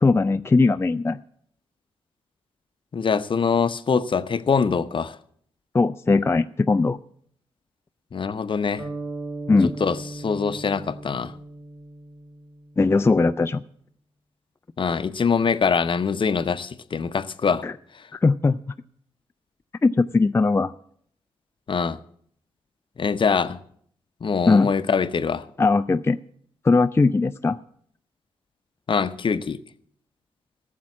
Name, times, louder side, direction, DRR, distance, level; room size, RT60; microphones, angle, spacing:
voice 1, 0.0-1.2 5.7-7.0 9.5-9.7 12.8-13.6 17.6-17.7 18.1-18.6 19.8-20.7 24.5-24.7 25.6-26.2 26.6-27.6, left 3 dB, 20° left, 0.4 m, -19 dB
voice 2, 2.9-5.2 8.1-8.9 9.8-11.3 14.8-17.6 21.7-22.0 23.0-23.6 24.2-25.5 28.9-29.6, left 5 dB, 45° left, 0.7 m, -23 dB
sound 1, 8.8-13.0, right 2 dB, 25° right, 3.7 m, -37 dB
13.0 x 7.5 x 7.2 m
supercardioid pair, 45°, 12 cm